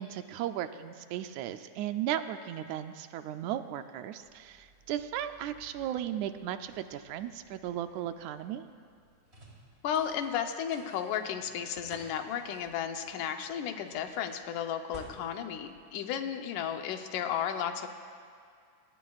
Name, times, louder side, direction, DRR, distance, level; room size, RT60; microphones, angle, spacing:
voice 1, 0.0-8.7, right 11 dB, 80° right, 9 dB, 1.9 m, -36 dB
sound 1, 4.2-16.6, right 1 dB, 20° right, 3.4 m, -56 dB
voice 2, 9.8-17.9, left 8 dB, 90° left, 6 dB, 2.4 m, -34 dB
26.0 x 20.0 x 2.4 m, 2.2 s
omnidirectional pair, 3.5 m